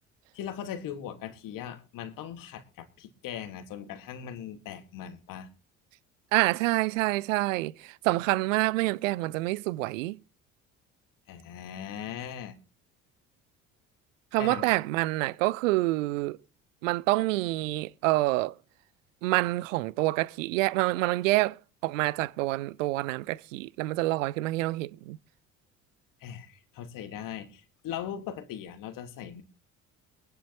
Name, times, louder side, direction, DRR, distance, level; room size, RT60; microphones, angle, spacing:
voice 1, 0.3-5.5 11.3-12.6 14.4-14.7 26.2-29.4, left 9 dB, 50° left, 1.7 m, -39 dB
voice 2, 6.3-10.2 14.3-16.4 16.8-18.6 19.2-21.6 21.8-25.2, right 20 dB, 65° right, 0.5 m, -27 dB
22.5 x 10.0 x 2.9 m
figure-of-eight pair, 55°, 41 cm